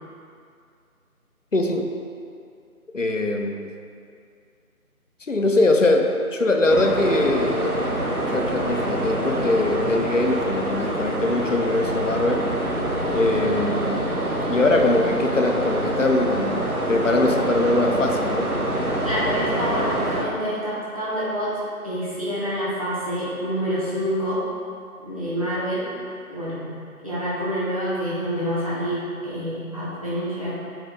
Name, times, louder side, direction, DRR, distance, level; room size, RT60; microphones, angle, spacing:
voice 1, 1.5-1.9 2.9-3.7 5.3-7.8 8.3-12.5 13.1-14.2 14.5-18.5, left 2 dB, 60° left, 2 dB, 0.7 m, -22 dB
sound 1, 6.7-20.2, right 1 dB, 85° right, 1.3 m, -25 dB
voice 2, 19.0-21.5 21.8-24.4 25.0-25.8 26.3-26.7 27.0-30.5, equal, 25° right, -10 dB, 1.2 m, -27 dB
7.1 x 4.9 x 3.8 m, 2.3 s
figure-of-eight pair, 170°, 43 cm